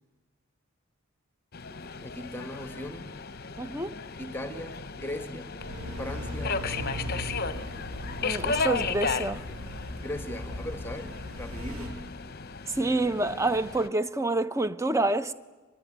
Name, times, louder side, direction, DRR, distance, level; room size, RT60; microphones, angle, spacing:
Subway metro underground, 1.5-13.9, left 5 dB, 45° left, 0.9 m, -35 dB
voice 1, 2.0-3.1 4.2-5.6 6.0-7.3 10.0-12.0, left 1 dB, 10° left, 1.6 m, -39 dB
voice 2, 3.6-4.0 8.2-9.4 12.7-15.3, right 2 dB, 15° right, 0.7 m, -27 dB
sound 1, 5.6-11.9, equal, 75° right, 6.1 m, -38 dB
25.0 x 21.0 x 9.3 m
head